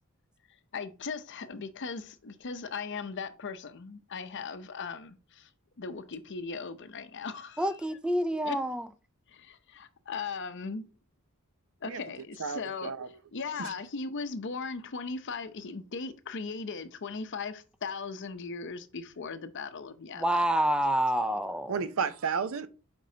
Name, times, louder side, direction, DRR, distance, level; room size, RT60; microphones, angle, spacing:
voice 1, 0.7-5.5 5.8-7.8 8.4-8.6 9.3-10.9 11.8-20.4, left 4 dB, 55° left, 0.6 m, -38 dB
voice 2, 7.6-8.8 20.2-21.8, right 1 dB, 5° right, 0.4 m, -27 dB
voice 3, 12.4-13.1 13.6-13.7 21.7-22.7, right 6 dB, 65° right, 0.6 m, -32 dB
7.3 x 5.2 x 2.8 m
head